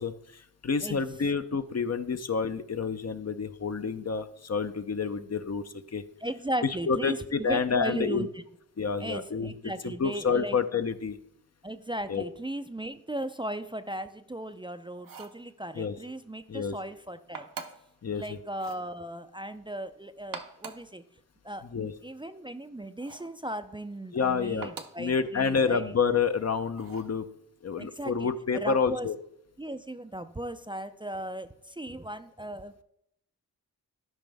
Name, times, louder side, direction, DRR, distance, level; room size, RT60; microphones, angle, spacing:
voice 1, 0.0-6.0 6.6-8.3 8.8-9.5 9.8-11.2 12.1-12.2 15.8-16.0 16.5-16.7 18.0-18.4 21.6-21.9 24.1-24.7 25.0-27.3 27.6-29.2, left 5 dB, 45° left, 9 dB, 0.7 m, -29 dB
voice 2, 6.2-8.3 9.0-10.6 11.6-17.5 18.1-21.0 21.4-25.9 27.8-29.1 29.6-32.8, right 1 dB, 15° right, 9 dB, 0.5 m, -37 dB
sound 1, 15.0-15.4 17.3-17.9 18.5-18.9 20.2-20.9 23.0-23.4 24.6-25.1 26.8-27.2, right 5 dB, 65° right, 1.0 m, -43 dB
12.5 x 5.2 x 3.4 m, 0.77 s
cardioid pair, 45°, 36 cm